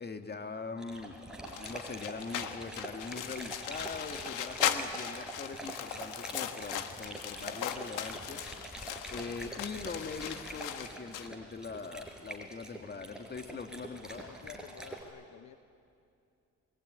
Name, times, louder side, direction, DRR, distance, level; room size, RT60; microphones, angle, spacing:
voice 1, 0.0-8.5 9.1-14.2, left 4 dB, 35° left, 7 dB, 1.9 m, -42 dB
Dog, 0.8-15.0, right 1 dB, ahead, 4.8 m, -45 dB
sound 1, 1.5-11.3, left 10 dB, 90° left, 1.4 m, -38 dB
voice 2, 14.2-15.5, left 10 dB, 65° left, 10 dB, 1.0 m, -51 dB
28.0 x 21.5 x 9.5 m, 2.5 s
cardioid pair, 90°, 30 cm